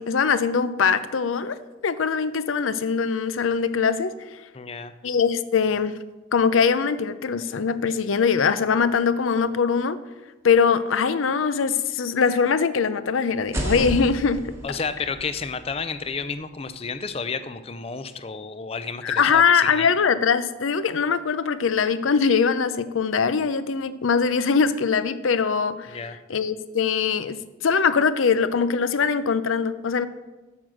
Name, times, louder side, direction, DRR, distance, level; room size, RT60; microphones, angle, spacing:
voice 1, 0.0-1.6 1.8-4.1 5.0-6.0 6.3-10.0 10.4-14.5 19.0-26.0 26.3-30.1, left 6 dB, 90° left, 14 dB, 0.5 m, -22 dB
voice 2, 4.5-4.9 14.6-19.9 25.9-26.2, left 4 dB, 30° left, 12 dB, 0.4 m, -31 dB
sound 1, 13.4-17.2, right 1 dB, 15° right, 1.1 m, -33 dB
8.6 x 6.2 x 6.4 m, 1.2 s
head